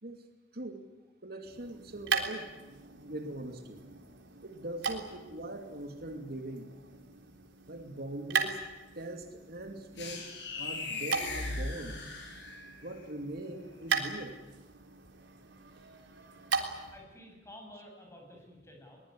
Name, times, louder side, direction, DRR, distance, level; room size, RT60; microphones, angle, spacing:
voice 1, 0.5-0.8 1.2-3.8 4.4-6.7 7.7-8.6 8.9-12.0 12.8-14.4, right 1 dB, 60° right, 5 dB, 2.7 m, -42 dB
sound 1, 1.4-17.0, right 5 dB, 80° right, 3.6 m, -39 dB
sound 2, 10.0-12.8, left 3 dB, 70° left, 7.0 m, -38 dB
voice 2, 16.9-19.0, left 1 dB, 15° left, 1 dB, 8.0 m, -52 dB
23.0 x 20.5 x 9.9 m, 1.1 s
head